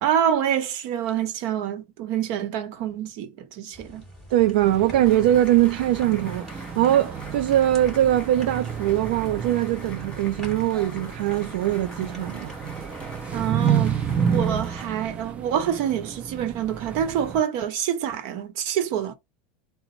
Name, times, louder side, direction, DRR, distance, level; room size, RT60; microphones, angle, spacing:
voice 1, 0.0-4.0 13.3-14.0 14.3-19.1, right 9 dB, 60° right, 1.0 m, -26 dB
sound 1, 3.7-15.3, equal, ahead, 2.9 m, -46 dB
voice 2, 4.3-12.5, right 13 dB, 80° right, 0.4 m, -22 dB
sound 2, 4.6-17.4, right 7 dB, 25° right, 0.5 m, -30 dB
sound 3, 5.0-14.9, left 2 dB, 20° left, 1.8 m, -44 dB
3.9 x 2.1 x 4.4 m
supercardioid pair, 130°, 5 cm